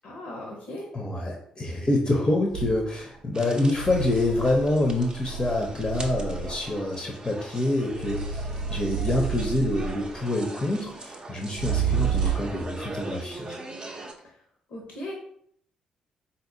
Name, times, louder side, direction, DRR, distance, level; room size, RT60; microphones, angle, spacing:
voice 1, 0.0-0.9 14.7-15.1, left 1 dB, 60° left, -1 dB, 0.7 m, -37 dB
voice 2, 0.9-13.6, left 2 dB, 25° left, 0 dB, 0.7 m, -26 dB
sound 1, 2.5-2.8 3.7-6.7 7.9-10.2 11.5-12.7, right 7 dB, 85° right, 0.6 m, -30 dB
sound 2, 3.3-14.1, right 2 dB, 25° right, 0.6 m, -41 dB
4.0 x 2.8 x 2.6 m, 0.67 s
figure-of-eight pair, 40°, 3 cm